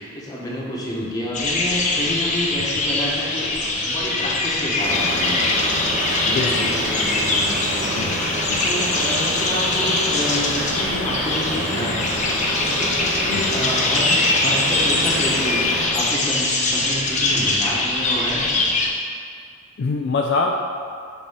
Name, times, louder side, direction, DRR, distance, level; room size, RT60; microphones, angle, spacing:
voice 1, 0.0-3.6 3.8-5.4 6.2-8.1 8.6-12.1 12.7-18.6, left 1 dB, 20° left, -5 dB, 1.3 m, -29 dB
sound 1, 1.3-18.9, left 2 dB, 35° left, 0.8 m, -22 dB
sound 2, 4.8-15.9, right 1 dB, 65° right, 1.4 m, -28 dB
voice 2, 6.2-6.7 7.9-8.2 8.5-8.7 13.2-13.5 19.8-20.6, left 3 dB, 55° left, 2 dB, 0.4 m, -25 dB
6.1 x 4.3 x 6.0 m, 2.2 s
head